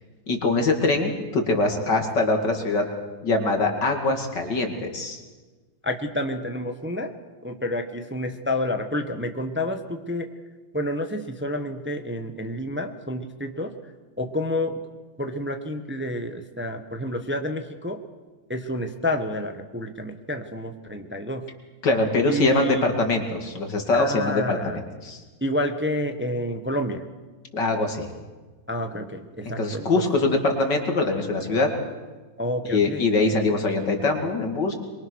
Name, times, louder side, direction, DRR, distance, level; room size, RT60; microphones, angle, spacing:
voice 1, 0.3-2.9 3.2-5.2 21.8-25.2 27.5-28.1 29.6-31.7 32.6-34.7, left 3 dB, 55° left, 4 dB, 3.0 m, -23 dB
voice 2, 5.8-7.1 7.4-10.3 10.7-13.7 14.2-14.8 15.2-18.0 18.5-21.5 22.3-22.9 24.0-24.8 25.4-27.0 28.7-30.1 32.4-33.0, left 1 dB, 5° right, 6 dB, 1.0 m, -29 dB
23.5 x 23.5 x 6.4 m, 1.3 s
omnidirectional pair, 2.3 m